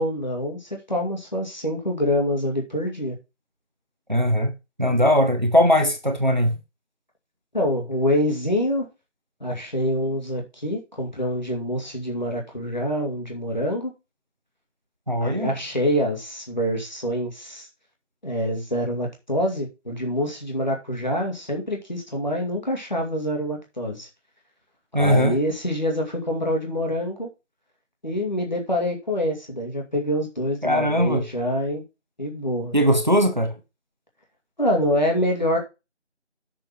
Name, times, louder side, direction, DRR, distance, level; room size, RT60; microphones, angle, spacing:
voice 1, 0.0-3.2 7.5-8.9 9.4-13.9 15.2-17.7 18.2-24.1 24.9-27.3 28.0-31.8 32.2-32.7 34.6-35.6, equal, 40° left, 2.3 m, -26 dB
voice 2, 4.1-4.5 4.8-6.6 15.1-15.5 24.9-25.4 30.6-31.3 32.7-33.5, equal, 40° right, 1.2 m, -20 dB
7.1 x 5.6 x 5.5 m
figure-of-eight pair, 175°, 36 cm